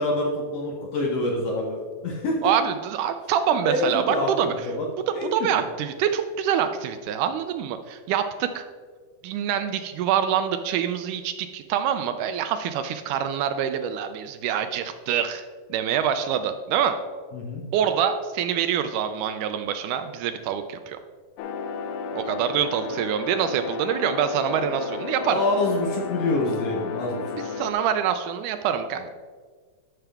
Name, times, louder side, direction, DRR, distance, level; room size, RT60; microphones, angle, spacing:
voice 1, 0.0-2.4 3.6-4.9 5.1-5.3 17.3-17.6 25.1-27.3, left 2 dB, 65° left, -1 dB, 1.7 m, -26 dB
voice 2, 2.4-4.5 5.3-8.6 9.2-15.5 15.7-17.0 17.7-21.0 22.2-25.4 27.6-29.1, right 8 dB, 80° right, 9 dB, 1.9 m, -25 dB
sound 1, 21.4-27.7, left 5 dB, 80° left, 2.3 m, -33 dB
12.5 x 5.8 x 3.4 m, 1.5 s
omnidirectional pair, 3.9 m